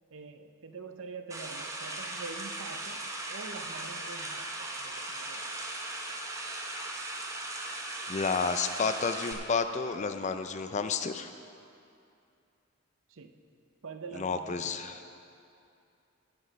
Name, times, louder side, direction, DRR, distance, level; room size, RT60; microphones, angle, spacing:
voice 1, 0.1-3.0 3.3-5.5 13.1-13.3 13.8-15.0, right 4 dB, 65° right, 7 dB, 0.6 m, -45 dB
sound 1, 1.3-9.3, right 2 dB, 15° right, 0.7 m, -38 dB
voice 2, 8.1-11.3 14.2-15.0, left 5 dB, 30° left, 9 dB, 0.4 m, -31 dB
15.5 x 6.1 x 5.2 m, 2.6 s
head